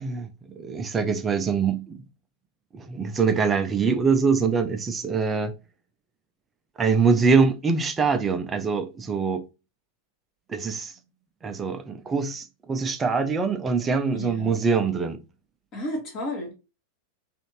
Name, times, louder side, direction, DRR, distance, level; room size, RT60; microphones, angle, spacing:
voice 1, 0.0-2.0 2.7-5.5 6.8-9.4 10.5-10.9 11.4-15.2, right 5 dB, 20° right, 0.5 m, -24 dB
voice 2, 14.1-14.6 15.7-16.5, left 1 dB, 35° left, 1.0 m, -32 dB
2.6 x 2.5 x 3.1 m
figure-of-eight pair, 90°, 0 cm